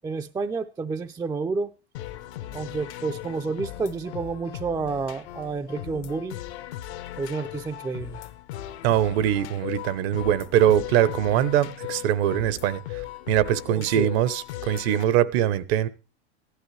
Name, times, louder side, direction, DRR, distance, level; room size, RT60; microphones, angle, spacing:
voice 1, 0.0-1.7 2.5-6.4 7.2-8.2 13.7-14.1, right 4 dB, 10° right, 8 dB, 0.5 m, -30 dB
sound 1, 1.9-15.0, left 14 dB, 70° left, 1.2 m, -38 dB
voice 2, 8.8-12.8 13.3-15.9, right 11 dB, 65° right, 17 dB, 1.0 m, -22 dB
15.0 x 11.5 x 3.3 m, 0.32 s
hypercardioid pair, 105°, 34 cm